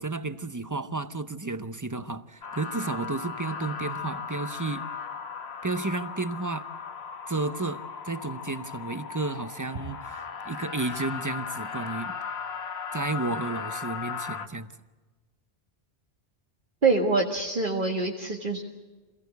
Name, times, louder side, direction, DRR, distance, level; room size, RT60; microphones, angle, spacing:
voice 1, 0.0-4.9 5.6-6.7 7.3-12.2 12.9-14.7, right 3 dB, 20° right, 12 dB, 0.6 m, -32 dB
sound 1, 2.4-14.5, left 6 dB, 75° left, 1.3 m, -37 dB
voice 2, 16.8-18.6, right 3 dB, 50° right, -2 dB, 1.9 m, -25 dB
27.0 x 16.5 x 8.1 m, 1.3 s
omnidirectional pair, 1.1 m